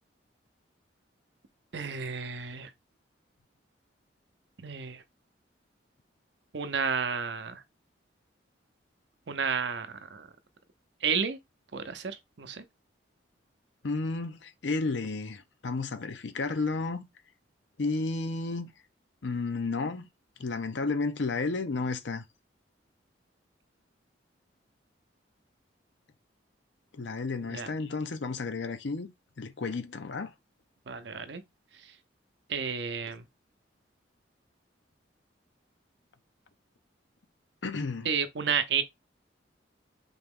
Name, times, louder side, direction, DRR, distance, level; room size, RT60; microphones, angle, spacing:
voice 1, 1.7-2.7 4.6-5.0 6.5-7.6 9.3-10.3 11.0-11.4 11.7-12.6 27.4-27.7 30.9-31.4 31.7-32.0 32.5-33.2 38.0-38.8, right 6 dB, 65° right, 0.6 m, -32 dB
voice 2, 13.8-17.0 17.8-18.7 19.2-20.1 20.4-22.2 27.0-29.1 29.4-30.3 37.6-38.1, left 3 dB, 75° left, 0.7 m, -32 dB
4.0 x 2.9 x 3.6 m
head